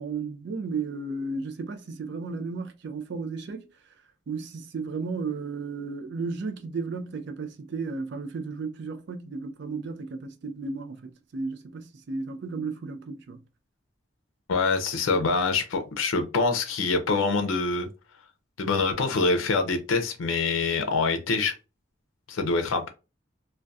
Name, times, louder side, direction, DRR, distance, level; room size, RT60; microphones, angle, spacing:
voice 1, 0.0-3.6 4.3-13.4, right 4 dB, 60° right, 0.4 m, -34 dB
voice 2, 14.5-17.9 18.6-21.6 22.3-22.9, left 4 dB, 85° left, 0.5 m, -25 dB
2.3 x 2.2 x 2.5 m
head